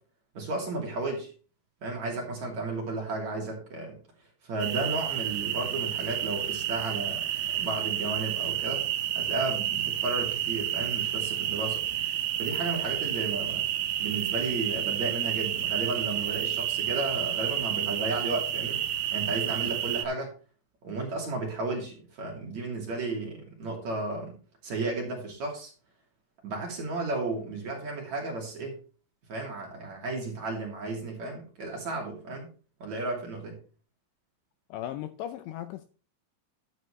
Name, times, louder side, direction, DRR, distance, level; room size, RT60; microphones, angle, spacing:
voice 1, 0.4-1.3 1.8-4.0 4.4-7.2 7.5-8.8 9.2-11.8 12.4-13.6 14.0-18.8 19.1-20.3 20.8-24.4 24.6-25.7 26.4-28.8 29.3-32.5 32.8-33.6, right 3 dB, 45° right, 3.3 m, -33 dB
sound 1, 4.6-20.0, right 11 dB, 80° right, 1.9 m, -30 dB
voice 2, 34.7-35.9, left 12 dB, 80° left, 2.6 m, -37 dB
12.0 x 9.5 x 3.2 m
omnidirectional pair, 5.5 m